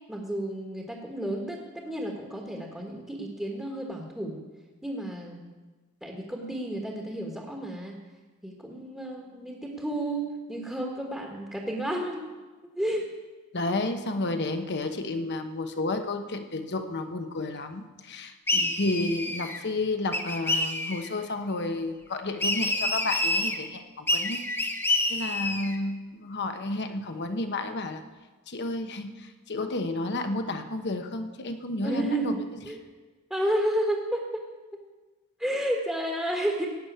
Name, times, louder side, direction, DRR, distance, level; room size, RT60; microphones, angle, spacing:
voice 1, 0.1-4.4 4.8-5.5 6.0-8.0 8.4-12.3 12.7-13.1 31.8-32.8 33.3-34.4 35.4-36.7, right 1 dB, 5° right, -1 dB, 1.5 m, -31 dB
voice 2, 13.5-24.4 25.1-28.0 28.5-32.4, left 2 dB, 55° left, 7 dB, 1.0 m, -31 dB
sound 1, 18.5-19.6 20.1-21.1 22.4-23.6 24.1-25.8, left 1 dB, 10° left, 1.1 m, -28 dB
16.5 x 6.2 x 9.3 m, 1.3 s
head